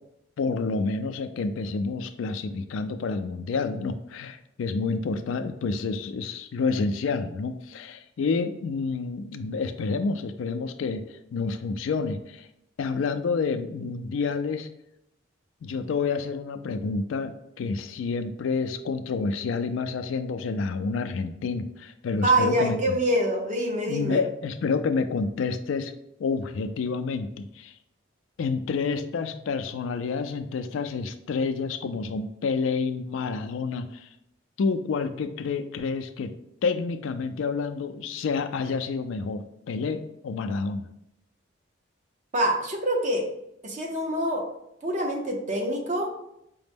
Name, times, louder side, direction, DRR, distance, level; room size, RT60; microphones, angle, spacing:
voice 1, 0.4-11.0 11.3-12.5 12.8-14.7 15.6-23.0 23.9-25.9 26.2-27.7 28.4-34.1 34.6-36.3 36.6-40.9, left 4 dB, 75° left, 9 dB, 0.3 m, -29 dB
voice 2, 22.2-24.2 42.3-43.2 43.6-44.4 44.8-46.1, right 1 dB, 40° right, 1 dB, 0.7 m, -25 dB
5.0 x 2.1 x 3.4 m, 0.79 s
head